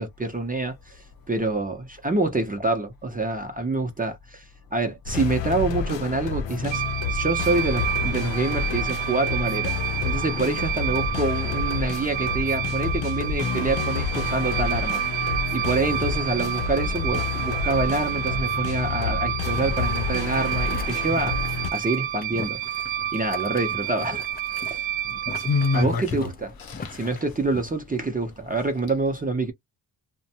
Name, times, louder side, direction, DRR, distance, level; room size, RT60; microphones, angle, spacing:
voice 1, 0.0-4.4 4.7-6.8 7.1-9.7 10.0-15.0 15.5-22.8 23.1-24.2 24.5-24.9 25.7-26.5 26.9-29.5, right 3 dB, 20° right, 0.6 m, -27 dB
sound 1, 5.1-21.7, left 6 dB, 75° left, 0.6 m, -29 dB
sound 2, 6.7-25.8, right 12 dB, 80° right, 0.7 m, -29 dB
Boiling, 20.3-27.6, left 5 dB, 25° left, 0.3 m, -42 dB
voice 2, 25.0-26.3 26.6-27.2, left 4 dB, 55° left, 1.0 m, -27 dB
2.5 x 2.1 x 2.8 m
wide cardioid pair, 110°, 44 cm